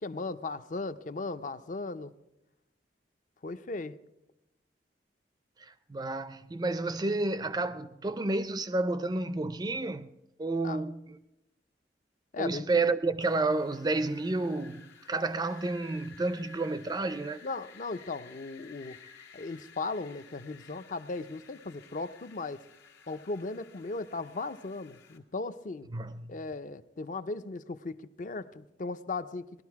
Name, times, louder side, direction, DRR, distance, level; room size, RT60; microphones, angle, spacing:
voice 1, 0.0-2.1 3.4-4.0 10.6-10.8 12.3-12.7 17.4-19.0 19.3-22.6 23.1-25.9 26.3-29.6, left 3 dB, 45° left, 0.5 m, -37 dB
voice 2, 5.6-10.1 10.4-11.2 12.4-17.4 25.9-26.4, right 2 dB, 25° right, 0.4 m, -31 dB
Wind, 13.2-25.2, left 6 dB, 85° left, 1.7 m, -55 dB
19.5 x 12.5 x 4.7 m
head